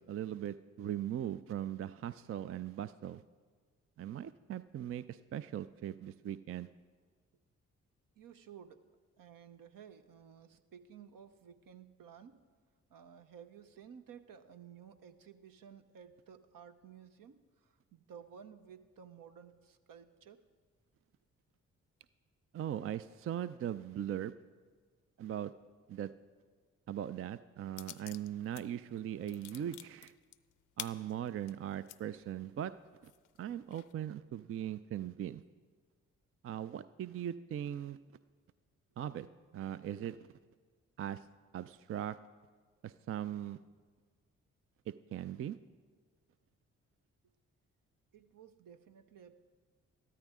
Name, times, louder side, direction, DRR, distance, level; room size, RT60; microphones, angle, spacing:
voice 1, 0.0-3.2 4.0-6.7 22.5-24.3 25.2-25.5 25.9-26.1 26.9-30.1 30.8-32.7 33.0-33.1 33.4-35.4 36.4-38.0 39.0-39.3 39.5-40.2 41.0-41.2 41.5-42.2 42.8-43.6 44.9-45.6, right 10 dB, 40° right, 14 dB, 0.4 m, -39 dB
voice 2, 8.1-8.9 9.2-12.4 12.9-20.4 48.1-49.4, right 8 dB, 65° right, 9 dB, 0.8 m, -55 dB
sound 1, 27.8-28.6 29.0-32.0 32.5-32.6 33.0-33.9, left 12 dB, 60° left, 0.5 m, -48 dB
13.0 x 13.0 x 3.6 m, 1.5 s
hypercardioid pair, 40°, 36 cm